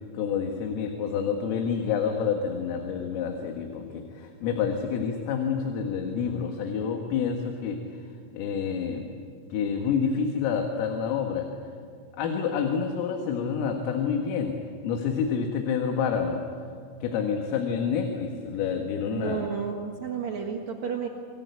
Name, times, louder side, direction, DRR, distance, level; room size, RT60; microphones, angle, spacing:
voice 1, 0.1-7.8 8.3-9.1 9.5-11.5 12.2-14.5 14.8-16.4 17.0-19.4, left 6 dB, 80° left, 3 dB, 4.3 m, -28 dB
voice 2, 19.1-21.1, right 7 dB, 75° right, 2 dB, 1.6 m, -32 dB
27.0 x 23.5 x 8.4 m, 2.2 s
omnidirectional pair, 6.0 m